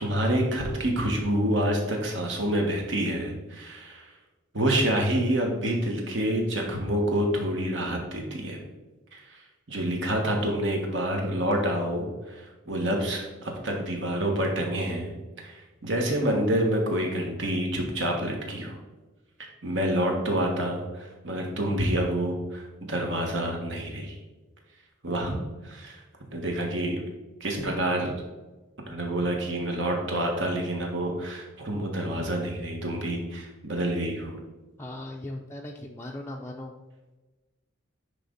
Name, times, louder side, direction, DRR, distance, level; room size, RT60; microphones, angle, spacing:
voice 1, 0.0-4.1 4.5-8.6 9.1-9.4 9.7-15.1 15.4-18.8 19.6-24.2 25.0-25.4 25.6-26.0 26.3-27.0 27.4-28.1 28.9-34.4, right 1 dB, 70° right, 1 dB, 1.5 m, -27 dB
voice 2, 34.8-36.7, left 1 dB, 15° left, -2 dB, 0.4 m, -38 dB
10.0 x 3.4 x 4.0 m, 1.2 s
head